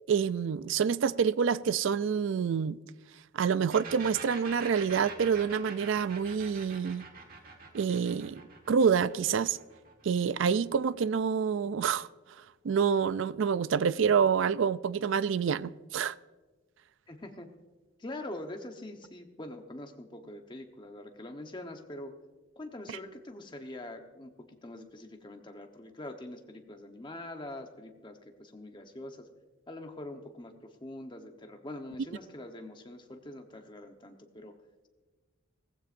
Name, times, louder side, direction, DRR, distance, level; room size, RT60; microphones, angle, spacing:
voice 1, 0.1-2.8 3.3-7.0 7.7-8.4 8.7-9.6 10.0-12.1 12.6-16.1 22.9-23.0, right 6 dB, 65° right, 0.4 m, -27 dB
sound 1, 3.7-11.2, right 4 dB, 45° right, 1.5 m, -46 dB
voice 2, 17.1-17.5 18.0-22.1 22.6-29.3 29.7-34.5, left 1 dB, 20° left, 1.0 m, -44 dB
18.0 x 15.0 x 2.6 m
head